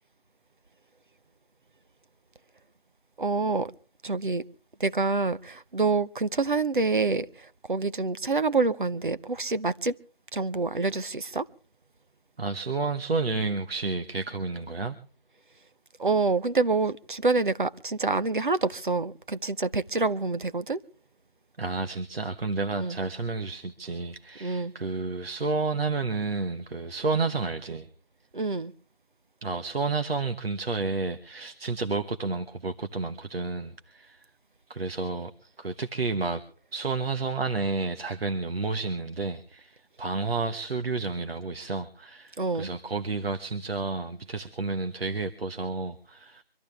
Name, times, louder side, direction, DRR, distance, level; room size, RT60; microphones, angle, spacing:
voice 1, 3.2-3.7 4.0-4.4 4.8-10.0 10.3-11.5 16.0-20.8 22.7-23.0 24.4-24.7 28.3-28.7 42.4-42.7, right 3 dB, 55° right, 0.9 m, -27 dB
voice 2, 12.4-15.0 21.6-27.9 29.4-34.2 34.7-36.4 36.7-46.4, right 3 dB, 75° right, 1.3 m, -31 dB
24.5 x 14.0 x 3.4 m
figure-of-eight pair, 180°, 30 cm